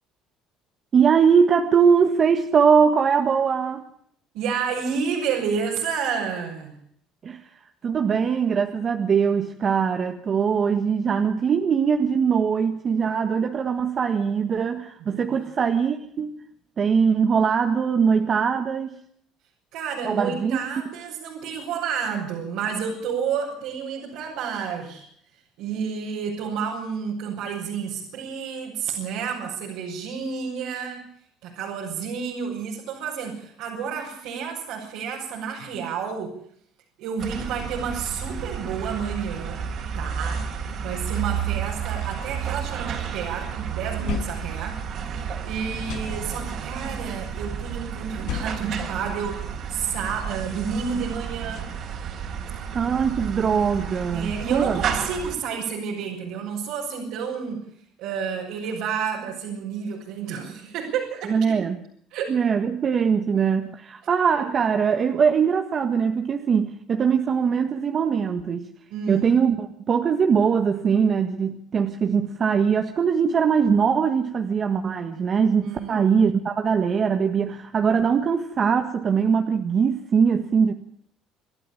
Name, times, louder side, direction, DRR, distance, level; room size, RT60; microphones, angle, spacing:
voice 1, 0.9-3.8 7.2-7.5 7.8-16.3 16.8-19.0 20.0-20.6 52.7-54.8 61.3-61.8 62.3-68.7 69.1-80.7, right 6 dB, 40° right, 6 dB, 1.7 m, -21 dB
voice 2, 4.3-6.7 15.1-15.4 19.7-25.1 25.6-31.1 31.4-36.4 37.0-39.7 39.9-40.5 40.8-51.7 54.1-57.6 58.0-61.6 62.1-62.3 68.9-69.3 75.6-76.1, right 6 dB, 80° right, -3 dB, 6.7 m, -30 dB
sound 1, 37.2-55.4, right 7 dB, 55° right, 4.8 m, -31 dB
sound 2, 41.7-43.2 43.6-45.4 45.7-46.7 48.0-49.7, left 7 dB, 75° left, 6.2 m, -37 dB
28.0 x 12.0 x 9.0 m, 0.65 s
cardioid pair, 105°, 0 cm